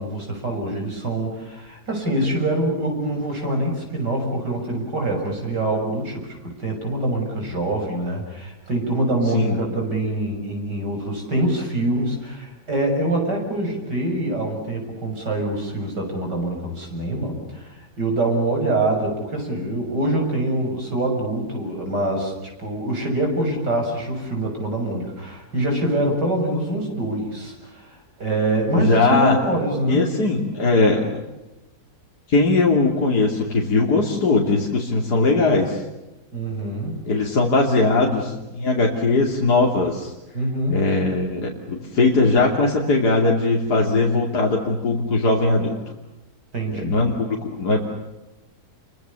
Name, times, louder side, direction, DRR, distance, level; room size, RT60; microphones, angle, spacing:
voice 1, 0.0-27.9 28.2-30.0 36.3-37.3 40.3-41.0 46.5-47.0, right 1 dB, 80° right, 2 dB, 7.6 m, -25 dB
voice 2, 28.7-29.4 29.9-31.0 32.3-35.8 37.1-40.1 40.7-45.8 46.8-47.8, left 3 dB, 70° left, -1 dB, 3.4 m, -19 dB
29.0 x 24.5 x 7.0 m, 0.99 s
omnidirectional pair, 1.8 m